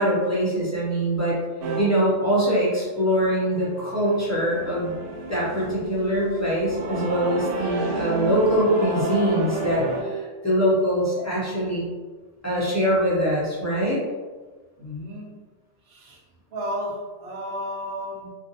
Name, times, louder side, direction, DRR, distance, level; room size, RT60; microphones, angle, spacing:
voice 1, 0.0-1.4 1.8-5.0 5.3-11.9 12.4-14.0, equal, 20° left, -9 dB, 0.5 m, -23 dB
sound 1, 1.6-1.8 3.0-10.0, right 2 dB, 90° right, 0.9 m, -30 dB
voice 2, 14.8-15.3 15.8-16.2 16.5-18.3, equal, 60° right, -2 dB, 0.8 m, -33 dB
2.4 x 2.0 x 2.7 m, 1.3 s
omnidirectional pair, 1.2 m